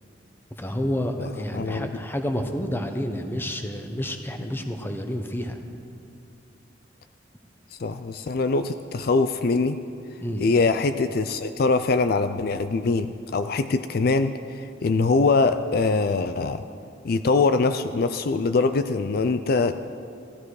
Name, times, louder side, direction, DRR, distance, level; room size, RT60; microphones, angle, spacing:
voice 1, 0.6-5.6 10.2-10.5, equal, 10° left, 6 dB, 1.0 m, -29 dB
voice 2, 1.5-1.9 7.8-9.8 10.4-16.6 17.0-19.8, left 3 dB, 55° left, 10 dB, 0.4 m, -23 dB
16.5 x 13.5 x 4.8 m, 2.5 s
head